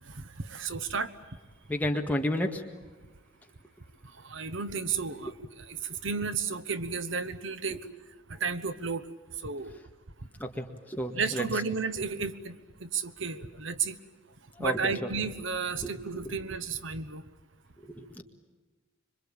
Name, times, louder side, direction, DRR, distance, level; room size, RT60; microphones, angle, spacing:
voice 1, 0.4-1.1 4.2-5.3 5.7-5.8 6.0-7.8 8.4-9.0 9.4-9.8 11.1-14.0 14.6-17.2, right 5 dB, 70° right, 12 dB, 1.1 m, -32 dB
voice 2, 1.7-2.6 7.7-7.8 10.4-11.4 14.6-15.1 15.8-16.4 17.8-18.2, equal, 10° left, 2 dB, 1.9 m, -32 dB
26.0 x 24.5 x 9.0 m, 1.2 s
head